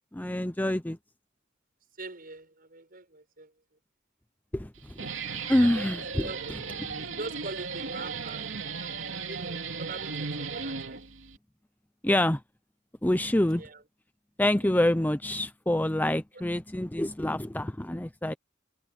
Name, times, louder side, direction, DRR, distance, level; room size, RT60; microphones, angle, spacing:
voice 1, 0.1-1.0 4.5-4.9 5.5-7.1 12.0-12.4 13.0-13.6 14.4-18.3, left 1 dB, 10° left, 0.7 m, -27 dB
voice 2, 2.0-3.5 5.6-5.9 6.2-6.5 7.0-8.5 9.3-11.0 13.6-13.8, right 3 dB, 50° right, 6.7 m, -42 dB
Guitar, 4.7-11.4, right 5 dB, 85° right, 2.9 m, -36 dB
head